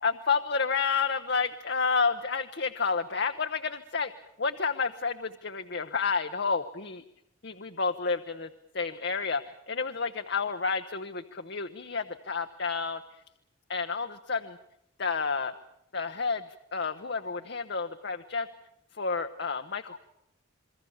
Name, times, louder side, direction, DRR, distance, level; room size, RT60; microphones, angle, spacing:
voice 1, 0.0-4.1 4.4-7.0 7.4-8.5 8.7-9.4 9.7-13.0 13.7-14.6 15.0-15.5 15.9-16.4 16.7-18.5 19.0-20.0, left 5 dB, 55° left, 7 dB, 0.9 m, -30 dB
28.5 x 22.5 x 7.2 m, 0.77 s
head